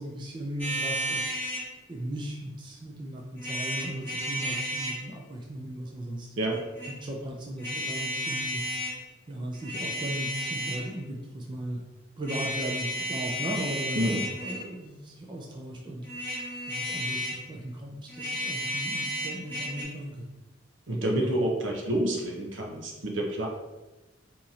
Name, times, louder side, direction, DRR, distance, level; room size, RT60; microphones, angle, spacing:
voice 1, 0.0-1.4 1.9-6.3 6.9-8.6 9.3-11.8 12.2-16.1 16.7-20.3 21.2-21.4, right 1 dB, 25° right, -1 dB, 0.4 m, -37 dB
sound 1, 0.6-1.7 3.4-5.0 6.5-6.9 7.6-8.9 9.5-10.9 12.2-14.7 16.0-17.4 18.1-19.8, equal, 10° left, 1.0 m, -33 dB
voice 2, 20.9-23.5, right 1 dB, 70° right, 0 dB, 0.7 m, -28 dB
2.9 x 2.5 x 4.0 m, 1.1 s
head